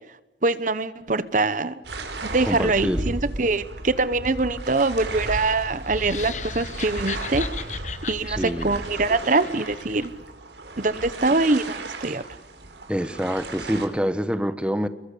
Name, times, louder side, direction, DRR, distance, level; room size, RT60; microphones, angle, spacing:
voice 1, 0.4-1.8 2.2-7.5 8.1-10.1 10.8-12.2, right 3 dB, 45° right, 14 dB, 1.0 m, -23 dB
sound 1, 1.8-13.9, right 2 dB, 75° right, 4.8 m, -34 dB
voice 2, 2.5-3.1 8.3-8.7 12.9-14.9, equal, 5° right, 11 dB, 1.2 m, -26 dB
sound 2, 5.9-10.1, left 8 dB, 40° left, 1.1 m, -37 dB
27.5 x 22.5 x 8.5 m, 1.0 s
head